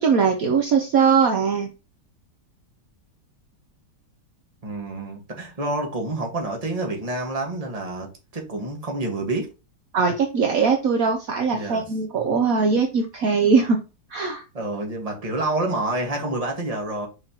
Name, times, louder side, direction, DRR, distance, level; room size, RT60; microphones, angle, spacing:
voice 1, 0.0-1.7 9.9-13.8 14.1-14.4, right 5 dB, 60° right, 1.1 m, -20 dB
voice 2, 4.6-8.1 8.3-9.5 11.5-11.8 14.5-17.1, right 2 dB, 20° right, 1.5 m, -28 dB
5.8 x 5.6 x 2.9 m
omnidirectional pair, 1.9 m